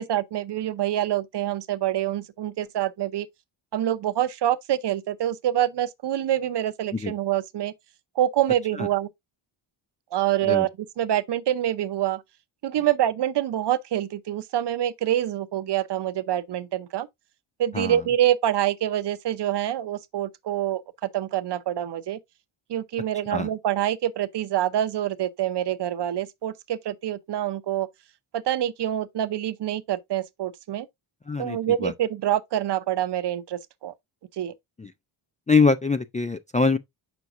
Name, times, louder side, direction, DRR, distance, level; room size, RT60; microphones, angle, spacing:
voice 1, 0.0-3.3 3.7-7.7 8.2-9.1 10.1-10.7 11.0-12.2 12.6-17.1 17.6-20.8 21.1-22.2 22.7-27.9 28.3-30.9 31.4-33.9 34.4-34.5, right 12 dB, 55° right, 0.7 m, -26 dB
voice 2, 31.3-31.9 34.8-34.9 35.5-36.8, left 4 dB, 15° left, 0.3 m, -23 dB
8.0 x 6.0 x 2.5 m
wide cardioid pair, 165°, 49 cm